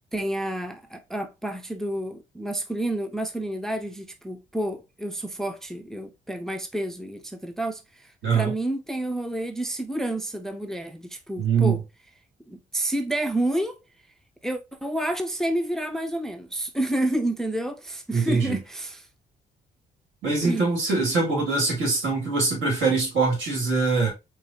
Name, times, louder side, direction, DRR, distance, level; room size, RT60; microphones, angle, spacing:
voice 1, 0.1-11.8 12.5-13.8 14.4-19.1 20.4-20.7, right 1 dB, ahead, 0.5 m, -29 dB
voice 2, 11.4-11.8 18.1-18.6 20.2-24.1, right 4 dB, 75° right, 2.2 m, -23 dB
4.7 x 2.4 x 2.6 m
cardioid pair, 90°, 20 cm